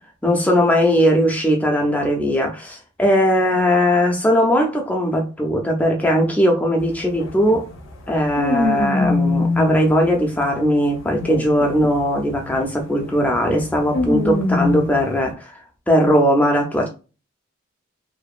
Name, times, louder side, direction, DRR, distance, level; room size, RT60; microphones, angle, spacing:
voice 1, 0.2-7.7 8.1-15.5 15.9-16.9, equal, 5° left, 0.4 m, -19 dB
sound 1, 6.8-6.9 7.2-10.4 11.0-15.0, left 2 dB, 75° left, 0.5 m, -23 dB
2.7 x 2.2 x 2.4 m
head